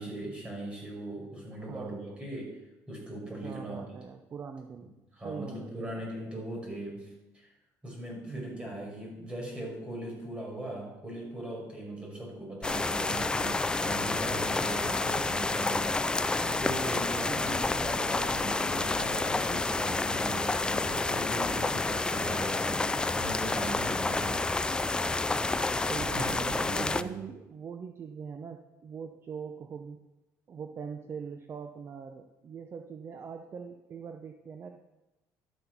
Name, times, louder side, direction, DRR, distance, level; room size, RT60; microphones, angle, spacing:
voice 1, 0.0-2.6 2.9-3.8 5.1-7.5 7.8-24.8 26.0-27.1, right 1 dB, 15° right, -2 dB, 5.5 m, -40 dB
voice 2, 1.6-2.0 3.4-6.0 8.2-8.7 17.3-18.0 25.9-30.0 30.5-34.7, right 6 dB, 40° right, 6 dB, 0.9 m, -42 dB
sound 1, 12.6-27.0, left 3 dB, 15° left, 0.4 m, -29 dB
12.0 x 7.9 x 6.1 m, 1.0 s
cardioid pair, 110°, 7 cm